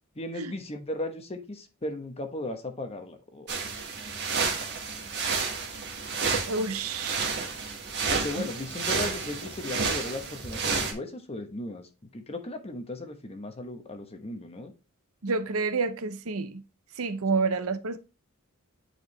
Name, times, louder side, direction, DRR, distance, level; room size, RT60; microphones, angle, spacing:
voice 1, 0.2-3.6 8.1-11.9 12.1-14.7, left 2 dB, 30° left, 1.1 m, -36 dB
sound 1, 3.5-10.9, right 5 dB, 55° right, 1.6 m, -31 dB
voice 2, 6.5-7.4 8.4-8.5 15.2-16.6 17.0-18.0, right 4 dB, 80° right, 0.7 m, -29 dB
8.1 x 4.7 x 3.2 m
head